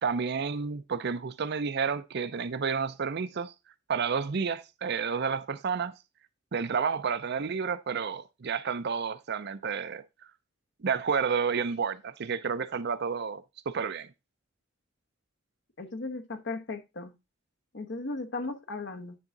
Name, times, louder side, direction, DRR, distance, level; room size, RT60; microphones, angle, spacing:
voice 1, 0.0-3.5 3.9-5.9 6.5-10.0 10.8-14.1, right 6 dB, 55° right, 0.5 m, -30 dB
voice 2, 15.8-17.1 17.7-19.2, left 3 dB, 60° left, 1.1 m, -36 dB
10.0 x 3.6 x 3.9 m
head